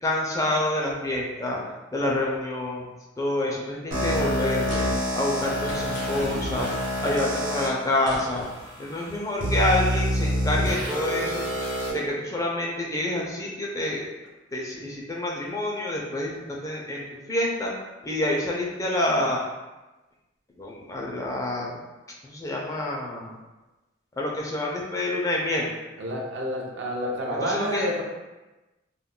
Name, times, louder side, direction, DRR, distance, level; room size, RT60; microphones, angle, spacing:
voice 1, 0.0-1.6 1.9-2.9 3.2-4.9 5.1-6.7 7.0-8.5 8.8-11.5 11.9-14.1 14.5-17.0 17.3-17.7 18.0-19.4 20.6-21.8 22.2-23.3 24.2-25.7 27.4-27.9, left 1 dB, 15° left, -2 dB, 0.4 m, -27 dB
sound 1, 3.9-7.7 8.4-8.5 9.4-11.9, equal, 80° right, 1.0 m, -27 dB
sound 2, 4.5-5.2 5.6-6.4 7.6-9.0, left 1 dB, 70° left, 0.5 m, -42 dB
voice 2, 26.0-28.0, equal, 65° right, -1 dB, 0.5 m, -29 dB
2.2 x 2.2 x 3.6 m, 1.1 s
head